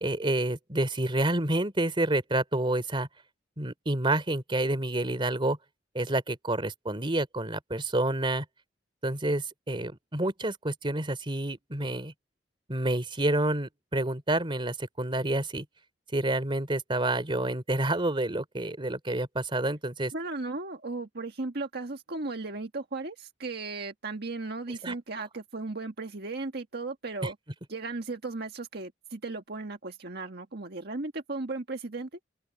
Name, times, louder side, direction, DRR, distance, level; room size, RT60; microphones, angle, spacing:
voice 1, 0.0-3.1 3.6-5.6 5.9-8.4 9.0-12.1 12.7-15.6 16.1-20.1 24.7-24.9 27.2-27.3, right 1 dB, 30° right, 3.0 m, -28 dB
voice 2, 20.1-27.4 27.7-32.1, right 3 dB, 60° right, 1.6 m, -36 dB
open air
head